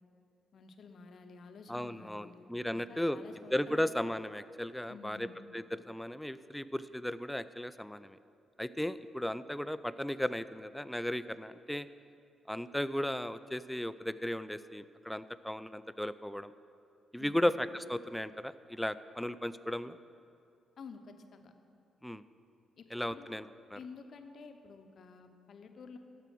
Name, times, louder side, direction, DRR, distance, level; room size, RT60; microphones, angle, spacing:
voice 1, 0.5-2.5 2.7-3.8 4.9-5.4 17.2-17.5 20.8-21.5 22.8-23.3 23.7-26.0, left 5 dB, 60° left, 6 dB, 0.8 m, -51 dB
voice 2, 1.7-3.2 3.5-5.3 5.5-8.2 8.6-11.9 12.5-16.5 17.1-20.0 22.0-22.2 22.9-23.8, left 1 dB, 5° left, 14 dB, 0.4 m, -35 dB
13.5 x 4.8 x 6.2 m, 2.6 s
hypercardioid pair, 45°, 0 cm